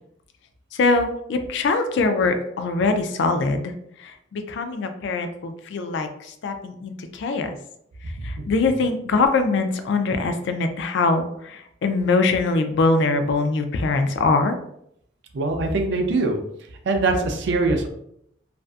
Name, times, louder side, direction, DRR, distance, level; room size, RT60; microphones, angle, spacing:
voice 1, 0.7-3.7 4.0-7.5 8.2-14.6, left 3 dB, 65° left, 7 dB, 0.3 m, -23 dB
voice 2, 15.3-16.4 16.8-17.9, right 3 dB, 65° right, 4 dB, 0.4 m, -22 dB
2.5 x 2.4 x 2.2 m, 0.73 s
head